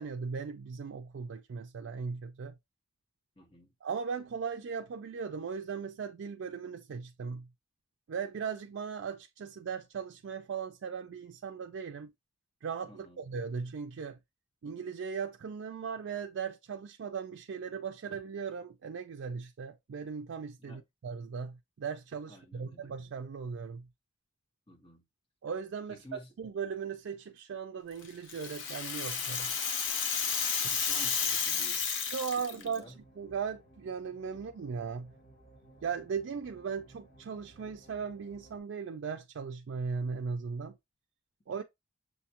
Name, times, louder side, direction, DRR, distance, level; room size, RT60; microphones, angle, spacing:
voice 1, 0.0-2.6 3.8-7.5 8.1-12.1 12.6-14.2 14.6-23.9 25.4-29.5 30.6-30.7 32.1-35.1 35.8-40.8 41.5-41.6, right 6 dB, 70° right, 0.4 m, -38 dB
voice 2, 3.4-3.7 12.9-13.2 20.6-20.8 22.3-22.9 24.7-25.0 25.9-26.3 30.7-31.8 32.4-32.9, equal, 25° left, 1.1 m, -52 dB
Rattle (instrument), 28.0-32.8, left 6 dB, 70° left, 0.8 m, -32 dB
sound 1, 32.9-38.6, right 1 dB, 55° left, 2.8 m, -58 dB
6.6 x 2.3 x 2.8 m
head